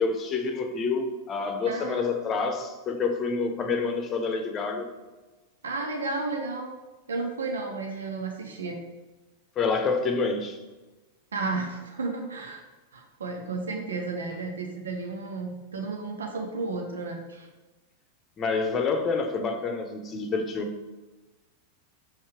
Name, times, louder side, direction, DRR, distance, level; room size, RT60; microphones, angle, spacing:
voice 1, 0.0-4.9 9.6-10.6 18.4-20.7, left 4 dB, 25° left, 6 dB, 0.8 m, -28 dB
voice 2, 1.7-2.1 5.6-6.7 7.1-8.8 11.3-12.6 12.9-17.5, right 3 dB, 70° right, 2 dB, 0.8 m, -33 dB
6.4 x 5.5 x 3.3 m, 1.2 s
figure-of-eight pair, 90°, 0 cm